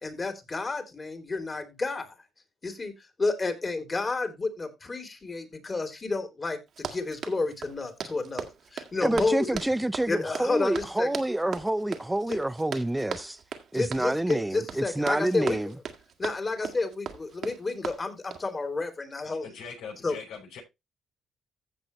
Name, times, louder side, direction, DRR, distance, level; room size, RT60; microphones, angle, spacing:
voice 1, 0.0-2.1 2.6-2.9 3.2-8.4 8.7-9.5 10.1-11.1 12.3-12.4 13.7-15.6 16.2-19.5 20.0-20.2, left 3 dB, 30° left, 3.3 m, -30 dB
Run, 6.7-18.5, right 7 dB, 65° right, 1.8 m, -39 dB
voice 2, 9.0-13.4 13.7-15.7, right 1 dB, 10° right, 0.8 m, -28 dB
voice 3, 19.3-20.6, left 6 dB, 85° left, 7.6 m, -42 dB
15.5 x 6.2 x 3.1 m
cardioid pair, 90°, 0 cm